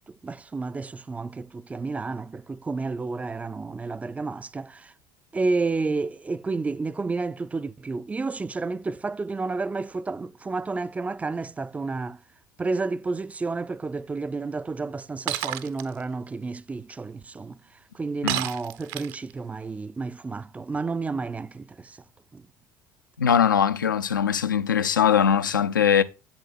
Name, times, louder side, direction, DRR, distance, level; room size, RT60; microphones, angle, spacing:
voice 1, 0.1-4.9 5.3-12.2 12.6-17.6 17.9-22.0 22.3-22.5, right 3 dB, 15° right, 0.3 m, -31 dB
Shatter, 15.3-15.8 18.3-19.3, right 12 dB, 55° right, 0.6 m, -29 dB
voice 2, 23.2-26.0, left 8 dB, 80° left, 0.5 m, -21 dB
8.1 x 7.2 x 2.5 m
figure-of-eight pair, 65°, 10 cm